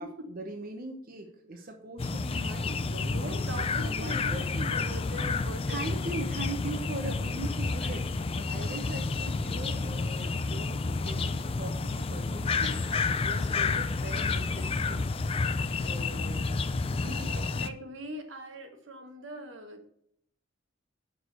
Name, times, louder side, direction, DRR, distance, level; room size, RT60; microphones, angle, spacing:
voice 1, 0.3-4.7 5.7-15.1 15.8-17.6, right 2 dB, 50° right, 3 dB, 1.0 m, -41 dB
sound 1, 2.0-17.7, left 4 dB, 30° left, 0.4 m, -30 dB
voice 2, 3.1-6.1 12.6-13.0 15.4-15.7 16.9-19.8, right 1 dB, 70° right, 5 dB, 1.2 m, -42 dB
6.3 x 4.9 x 6.7 m, 0.69 s
head